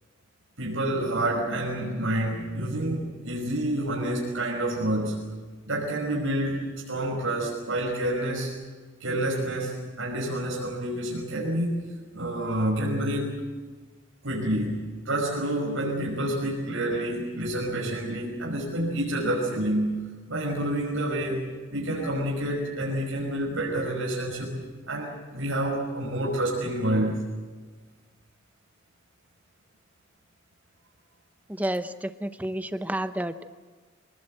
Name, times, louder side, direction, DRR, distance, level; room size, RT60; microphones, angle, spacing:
voice 1, 0.6-5.2 5.7-8.6 9.0-11.8 12.1-13.4 14.2-20.0 20.3-24.6 24.9-27.2, right 1 dB, 85° right, -3 dB, 5.5 m, -28 dB
voice 2, 31.5-33.5, right 1 dB, 10° right, 10 dB, 0.7 m, -30 dB
25.5 x 19.0 x 7.9 m, 1.4 s
head